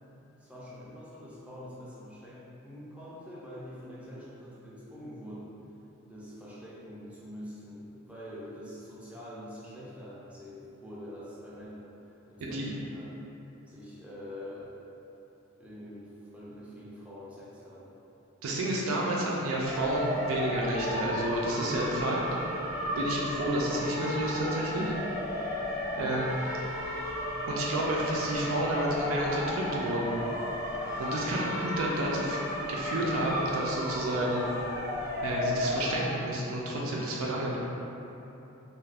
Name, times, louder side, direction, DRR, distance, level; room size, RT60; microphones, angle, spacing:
voice 1, 0.1-5.6 6.0-13.1 13.7-14.8 15.6-17.9 23.0-23.2 25.9-26.3, equal, 5° right, -9 dB, 0.5 m, -45 dB
voice 2, 18.4-22.2 23.0-24.9 26.0-26.3 27.5-30.3 31.0-32.4 32.7-34.5 35.2-37.6, right 1 dB, 85° right, -4 dB, 0.4 m, -30 dB
sound 1, 19.6-36.1, left 1 dB, 80° left, 0.6 m, -34 dB
2.4 x 2.4 x 3.3 m, 3.0 s
head